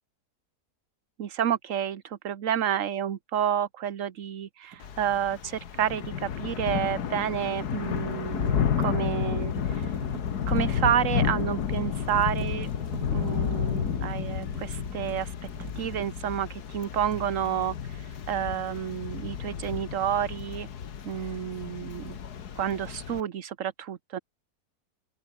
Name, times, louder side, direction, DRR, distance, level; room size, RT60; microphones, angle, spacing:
voice 1, 1.2-10.0 10.5-12.7 13.1-15.3 15.6-20.7 21.0-22.2 22.6-24.2, right 9 dB, 60° right, 1.3 m, -30 dB
sound 1, 4.7-4.9 7.9-16.7 17.0-17.9, right 7 dB, 90° right, 2.1 m, -46 dB
Thunder / Rain, 4.8-23.2, left 8 dB, 85° left, 1.9 m, -31 dB
open air
omnidirectional pair, 1.6 m